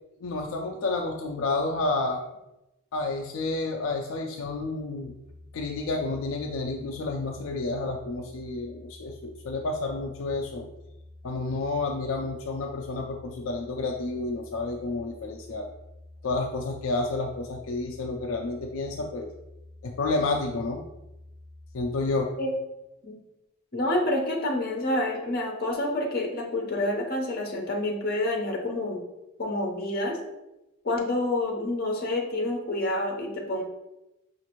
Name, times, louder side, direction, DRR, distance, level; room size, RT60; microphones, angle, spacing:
voice 1, 0.2-2.2 2.9-5.1 5.5-10.7 11.2-15.7 16.2-19.3 19.8-20.8 21.7-22.3, left 3 dB, 80° left, 2 dB, 0.4 m, -30 dB
sound 1, 5.0-21.9, left 1 dB, 5° right, 0.5 m, -49 dB
voice 2, 23.7-29.0 29.4-30.2 30.8-33.6, left 1 dB, 50° left, 1 dB, 0.8 m, -28 dB
5.0 x 2.5 x 2.9 m, 0.94 s
head